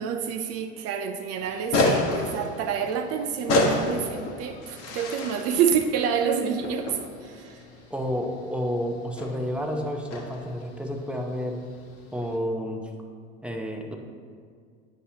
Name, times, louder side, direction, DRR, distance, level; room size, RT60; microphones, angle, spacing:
voice 1, 0.0-7.6, right 7 dB, 40° right, 6 dB, 0.5 m, -28 dB
sound 1, 1.4-12.4, left 2 dB, 40° left, 1.2 m, -31 dB
voice 2, 7.9-11.6 12.1-12.9 13.4-14.0, equal, 5° right, 1 dB, 0.7 m, -30 dB
10.0 x 5.5 x 2.9 m, 2.2 s
hypercardioid pair, 105°, 36 cm